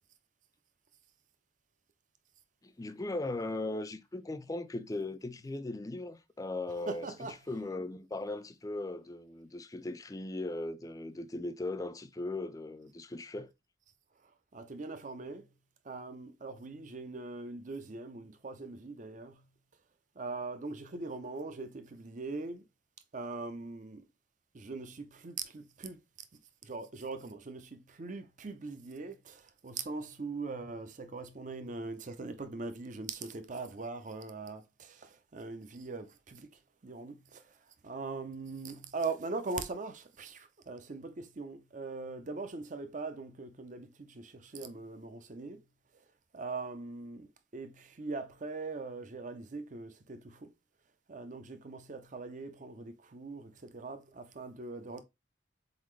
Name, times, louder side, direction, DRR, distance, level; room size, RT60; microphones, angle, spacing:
voice 1, 2.6-7.1 7.5-13.5, left 2 dB, 20° left, 0.4 m, -38 dB
voice 2, 6.8-7.4 14.5-15.5 15.8-19.4 20.2-22.6 23.1-24.0 24.5-26.0 26.6-36.5 36.8-37.5 37.8-45.6 46.3-50.5 51.1-55.0, right 3 dB, 45° right, 0.6 m, -41 dB
4.1 x 3.9 x 3.1 m
head